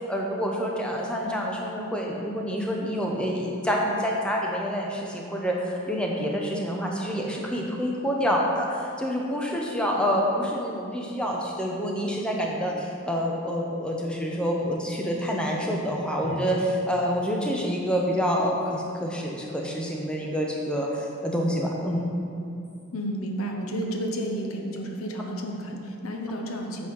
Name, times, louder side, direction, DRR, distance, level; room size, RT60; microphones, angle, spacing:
voice 1, 0.1-22.0, equal, 5° left, -2 dB, 0.7 m, -27 dB
Drum, 16.2-18.9, right 1 dB, 40° left, 1.5 m, -43 dB
voice 2, 22.9-26.9, right 1 dB, 90° left, 2 dB, 0.8 m, -31 dB
7.9 x 4.2 x 5.3 m, 2.5 s
head